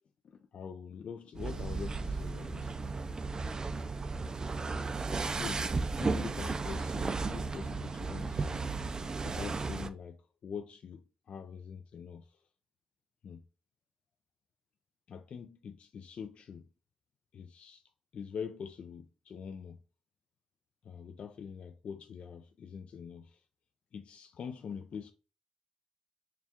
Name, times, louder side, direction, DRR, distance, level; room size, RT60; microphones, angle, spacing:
voice 1, 0.2-2.8 5.0-8.6 9.2-12.4 13.2-13.4 15.1-16.7 17.3-17.8 18.1-19.8 20.8-23.4 23.9-25.1, left 6 dB, 55° left, 0.3 m, -44 dB
sound 1, 1.3-9.9, right 4 dB, 30° right, 0.3 m, -34 dB
4.4 x 2.3 x 3.5 m
cardioid pair, 105°, 2 cm